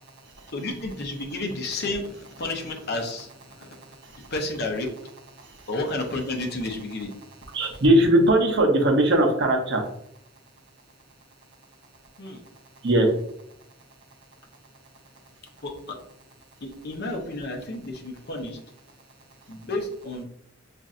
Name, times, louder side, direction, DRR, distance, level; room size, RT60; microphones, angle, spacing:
voice 1, 0.5-2.0 2.4-3.3 4.3-4.9 5.7-7.1 12.2-12.4 15.6-16.0 16.6-18.6 19.5-20.2, left 2 dB, 50° left, 2 dB, 0.7 m, -31 dB
voice 2, 4.0-4.3 5.4-5.7 7.5-9.8 12.8-13.1, right 1 dB, 55° right, 2 dB, 0.7 m, -20 dB
5.2 x 2.5 x 2.5 m, 0.72 s
head